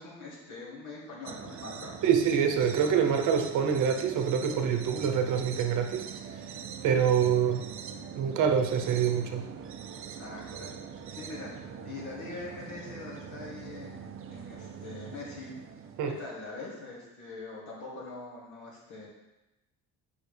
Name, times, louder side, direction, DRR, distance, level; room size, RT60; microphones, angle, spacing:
voice 1, 0.0-2.0 10.1-10.8 11.1-14.0 14.3-15.5 16.0-19.1, left 3 dB, 65° left, -5 dB, 2.5 m, -43 dB
sound 1, 1.2-16.3, right 7 dB, 40° right, 0.5 m, -43 dB
voice 2, 2.0-6.1 6.8-7.6 8.0-9.5 16.0-16.2, right 7 dB, 65° right, 5 dB, 0.8 m, -26 dB
8.7 x 5.4 x 3.4 m, 1.0 s
cardioid pair, 175°, 33 cm